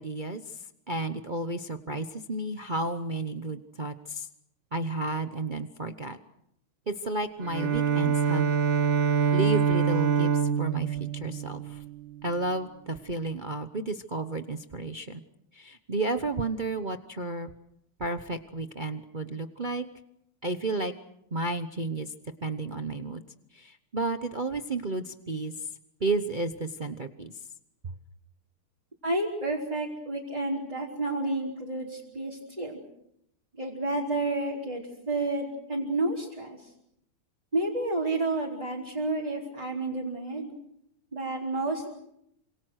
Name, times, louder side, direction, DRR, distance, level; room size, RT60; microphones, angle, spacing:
voice 1, 0.0-4.3 4.7-6.2 6.9-8.5 9.3-11.8 12.2-15.2 15.5-17.5 18.0-19.9 20.4-20.9 21.3-22.1 22.4-23.2 23.5-25.7 26.0-27.3, right 2 dB, 40° right, 8 dB, 0.7 m, -32 dB
Bowed string instrument, 7.4-12.4, right 6 dB, 65° right, 1.9 m, -25 dB
voice 2, 29.0-32.8 33.6-36.7 37.5-40.5 41.1-41.9, right 2 dB, 15° right, -4 dB, 4.2 m, -30 dB
28.0 x 26.5 x 6.4 m, 0.77 s
omnidirectional pair, 2.4 m